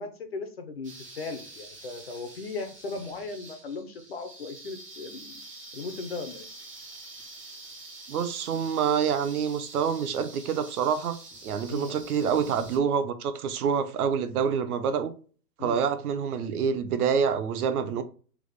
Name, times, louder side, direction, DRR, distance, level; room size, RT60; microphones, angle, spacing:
voice 1, 0.0-5.4 5.7-6.5 11.7-12.0 15.6-15.8, left 3 dB, 40° left, 0.4 m, -37 dB
sound 1, 0.8-12.8, right 2 dB, 20° right, 0.4 m, -46 dB
voice 2, 8.1-15.1 15.6-18.0, right 7 dB, 65° right, 0.6 m, -27 dB
3.4 x 2.0 x 3.5 m
hypercardioid pair, 155°, 48 cm